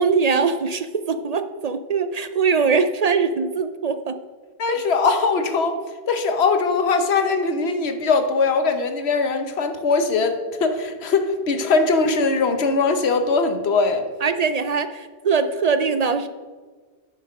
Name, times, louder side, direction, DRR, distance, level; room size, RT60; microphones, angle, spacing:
voice 1, 0.0-4.2 4.7-4.8 14.2-16.3, right 5 dB, 55° right, 10 dB, 0.4 m, -22 dB
voice 2, 4.6-5.8 6.1-14.0, left 4 dB, 80° left, 7 dB, 1.2 m, -21 dB
8.9 x 6.5 x 5.2 m, 1.5 s
omnidirectional pair, 1.1 m